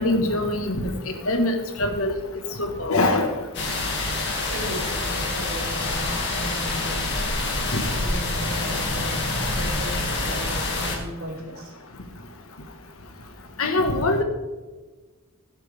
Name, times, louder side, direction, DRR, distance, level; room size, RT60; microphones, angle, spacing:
voice 1, 0.0-2.2 2.6-3.3 7.7-7.8 13.6-14.2, left 2 dB, 75° left, 5 dB, 1.6 m, -23 dB
sound 1, 3.5-11.0, left 2 dB, 50° left, 2.4 m, -26 dB
voice 2, 4.5-7.3 8.0-11.7, equal, 75° right, -1 dB, 3.1 m, -35 dB
12.5 x 10.5 x 3.6 m, 1.3 s
head